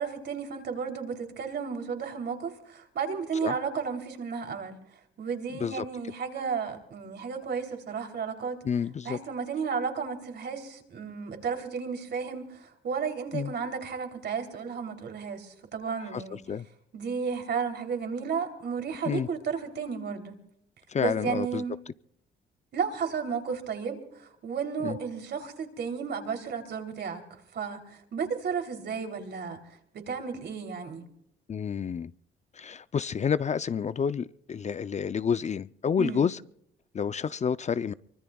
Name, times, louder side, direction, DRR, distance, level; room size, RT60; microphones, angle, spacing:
voice 1, 0.0-4.7 5.2-8.6 9.0-16.4 16.9-20.4 21.0-21.8 22.7-27.2 27.5-31.0 36.0-36.2, right 6 dB, 60° right, 3.3 m, -33 dB
voice 2, 8.6-9.2 13.3-13.5 16.1-16.2 16.5-16.7 19.1-19.3 20.9-21.6 24.8-25.0 31.5-32.1 32.6-36.4 36.9-37.9, left 7 dB, 35° left, 0.5 m, -29 dB
24.0 x 23.5 x 2.3 m
cardioid pair, 90°, 20 cm